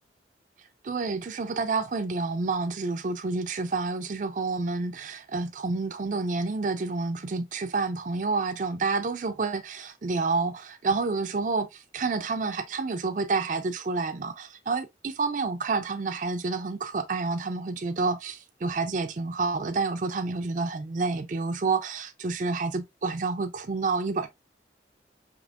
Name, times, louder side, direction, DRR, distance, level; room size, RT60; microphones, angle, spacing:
voice 1, 0.8-24.3, right 4 dB, 45° right, 0.4 m, -29 dB
5.0 x 2.9 x 2.3 m
head